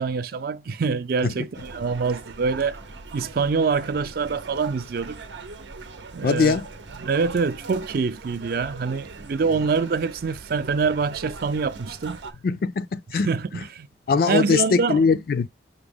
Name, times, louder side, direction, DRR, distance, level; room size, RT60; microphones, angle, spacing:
voice 1, 0.0-2.8 3.1-5.2 6.1-6.6 7.0-12.2 13.3-13.9 14.3-15.0, right 5 dB, 55° right, 0.4 m, -25 dB
sound 1, 1.5-12.3, right 4 dB, 80° right, 0.7 m, -41 dB
voice 2, 6.2-6.7 12.4-13.3 14.1-15.5, left 5 dB, 55° left, 0.3 m, -21 dB
5.9 x 2.0 x 3.4 m
head